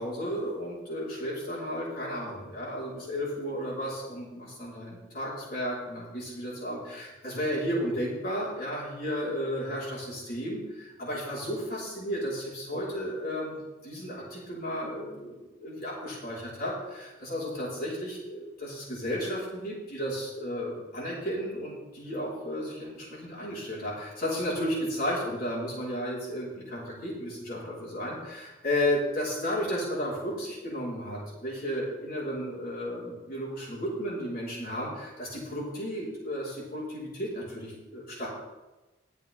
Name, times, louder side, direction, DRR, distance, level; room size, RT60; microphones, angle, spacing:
voice 1, 0.0-38.3, equal, 50° left, -6 dB, 5.1 m, -33 dB
21.0 x 7.3 x 3.8 m, 1.1 s
head